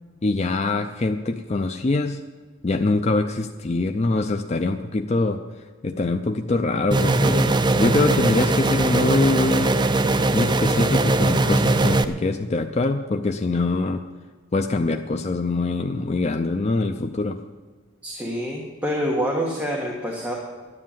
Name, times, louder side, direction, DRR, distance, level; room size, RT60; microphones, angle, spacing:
voice 1, 0.2-2.2 2.6-5.4 5.8-14.0 14.5-17.4, left 3 dB, 35° left, 6 dB, 0.5 m, -24 dB
sound 1, 6.9-12.0, right 2 dB, 25° right, 0.5 m, -20 dB
voice 2, 18.0-20.3, equal, 10° right, -2 dB, 1.5 m, -26 dB
12.0 x 9.9 x 7.4 m, 1.5 s
head